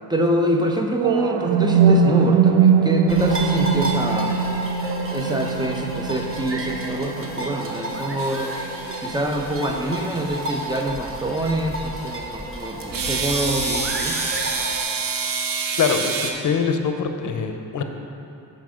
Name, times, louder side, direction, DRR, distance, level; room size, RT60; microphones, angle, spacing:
voice 1, 0.1-4.4 5.1-8.5 9.0-14.2, right 1 dB, 10° right, 2 dB, 0.6 m, -25 dB
sound 1, 0.9-8.9, right 6 dB, 85° right, 0.5 m, -21 dB
sound 2, 3.1-14.8, right 1 dB, 35° right, 1.0 m, -31 dB
sound 3, 8.2-10.8 12.9-16.3, right 4 dB, 60° right, 0.8 m, -28 dB
voice 2, 15.8-17.8, left 6 dB, 50° left, 6 dB, 0.7 m, -23 dB
5.8 x 5.1 x 6.3 m, 2.8 s
cardioid pair, 95°, 39 cm